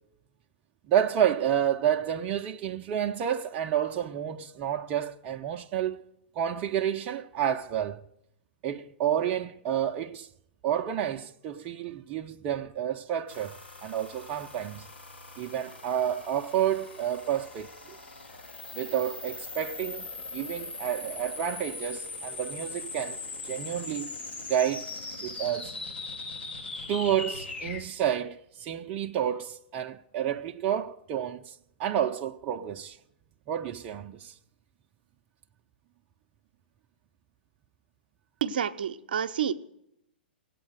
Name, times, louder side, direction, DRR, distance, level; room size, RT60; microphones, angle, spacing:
voice 1, 0.9-6.0 6.4-8.0 8.6-10.3 10.6-14.9 15.4-18.0 18.7-20.1 20.3-24.1 24.5-24.9 25.2-25.7 26.9-33.0 33.5-34.3, right 10 dB, 30° right, 0.6 m, -30 dB
sound 1, 13.3-27.8, left 3 dB, 85° left, 3.9 m, -40 dB
voice 2, 38.4-39.5, right 8 dB, 60° right, 0.8 m, -29 dB
17.5 x 8.3 x 7.9 m
figure-of-eight pair, 110°, 6 cm